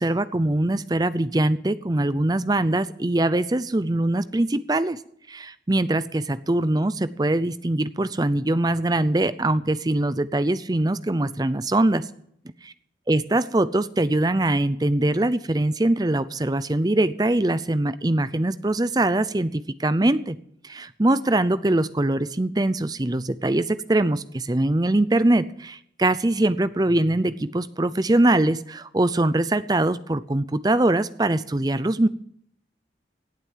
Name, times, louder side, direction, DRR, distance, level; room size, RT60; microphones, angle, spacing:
voice 1, 0.0-5.0 5.3-12.0 12.6-12.7 13.1-20.4 20.6-32.1, right 1 dB, 20° right, 15 dB, 0.6 m, -22 dB
17.0 x 8.2 x 7.4 m, 0.70 s
head